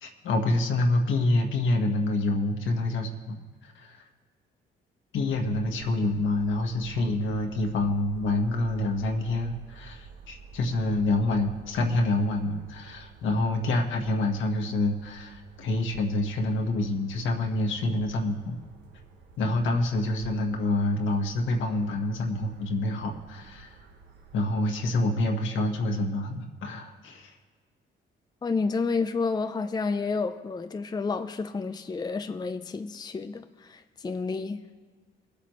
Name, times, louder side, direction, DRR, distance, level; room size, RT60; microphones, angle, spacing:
voice 1, 0.0-4.0 5.1-18.6 19.4-23.8 24.3-27.4, left 2 dB, 75° left, 2 dB, 1.4 m, -27 dB
sound 1, 5.1-24.5, right 5 dB, 70° right, 1.4 m, -51 dB
voice 2, 28.4-34.6, left 4 dB, 20° left, 8 dB, 0.5 m, -30 dB
21.5 x 8.3 x 3.1 m, 1.5 s
cardioid pair, 90°, 20 cm